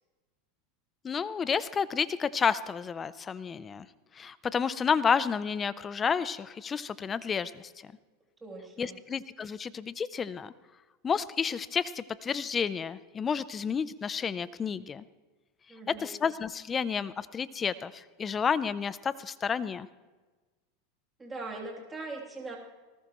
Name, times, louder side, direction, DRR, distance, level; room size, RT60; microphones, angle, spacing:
voice 1, 1.0-3.9 4.1-7.7 8.8-10.5 11.0-15.0 15.9-19.9, left 6 dB, 25° left, 16 dB, 0.6 m, -30 dB
voice 2, 8.4-9.0 15.7-16.2 21.2-22.6, right 3 dB, 15° right, -3 dB, 3.0 m, -41 dB
19.0 x 19.0 x 3.1 m, 1.3 s
supercardioid pair, 120°, 0 cm